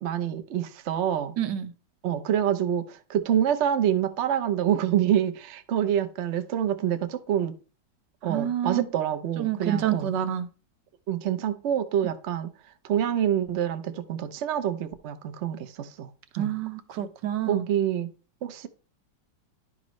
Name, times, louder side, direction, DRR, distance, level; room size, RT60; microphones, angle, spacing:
voice 1, 0.0-1.3 2.0-7.5 8.2-10.1 11.1-12.5 12.8-16.1 16.4-16.5 17.5-18.1 18.4-18.7, right 10 dB, 60° right, 0.7 m, -26 dB
voice 2, 1.4-1.7 8.2-8.9 9.4-10.5 16.3-17.6, right 10 dB, 80° right, 1.4 m, -28 dB
10.5 x 5.1 x 3.1 m
omnidirectional pair, 1.9 m